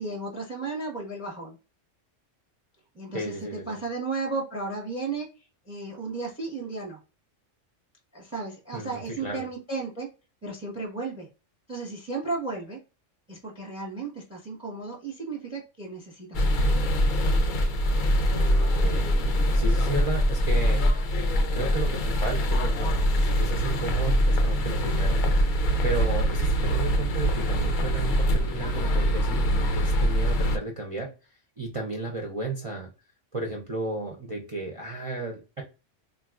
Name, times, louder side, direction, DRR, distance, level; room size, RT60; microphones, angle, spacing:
voice 1, 0.0-1.6 2.9-3.3 3.7-5.3 5.7-7.0 8.1-10.1 10.4-11.3 11.7-12.8 13.3-16.9, right 3 dB, 5° right, 1 dB, 0.7 m, -34 dB
voice 2, 3.1-3.8 8.7-9.4 18.2-20.8 21.5-32.9 33.3-35.6, right 3 dB, 40° right, 0 dB, 0.4 m, -34 dB
sound 1, 16.3-30.6, equal, 60° left, 0.5 m, -23 dB
3.9 x 2.3 x 2.3 m, 0.32 s
omnidirectional pair, 1.3 m